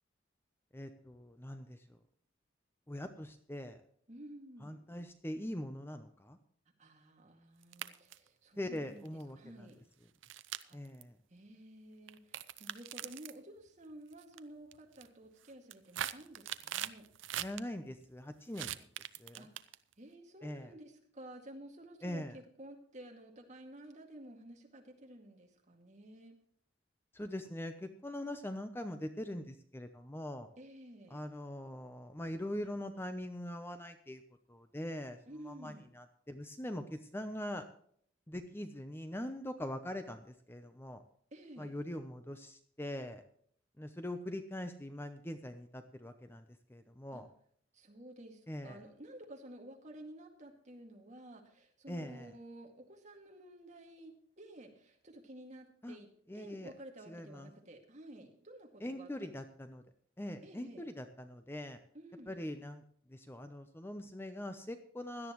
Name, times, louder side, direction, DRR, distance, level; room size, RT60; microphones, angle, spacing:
voice 1, 0.7-2.0 2.9-3.8 4.6-6.4 8.6-9.7 10.7-11.2 17.4-18.9 19.2-19.5 20.4-20.7 22.0-22.4 27.1-30.5 31.1-34.2 34.5-35.2 35.4-37.6 38.3-41.0 41.6-43.2 43.8-46.4 46.7-47.3 48.5-48.8 51.9-52.3 55.8-56.0 56.3-56.7 57.1-57.5 58.8-59.8 60.2-61.8 62.3-62.8 63.1-65.3, left 1 dB, 10° left, 8 dB, 0.7 m, -42 dB
voice 2, 4.1-4.8 6.8-9.8 10.6-10.8 11.3-17.1 19.4-19.5 20.0-26.4 30.6-31.2 35.3-35.9 41.3-41.7 47.1-47.2 47.7-56.1 56.3-59.4 60.4-60.9 61.9-62.4, right 1 dB, 40° right, 2 dB, 2.3 m, -52 dB
sound 1, 7.6-8.3 9.1-9.2 10.2-11.0 12.1-13.4 14.1-14.4 14.7-15.1 15.5-17.6 18.5-19.9, right 11 dB, 85° right, 0.6 m, -41 dB
17.0 x 11.5 x 3.1 m, 0.62 s
head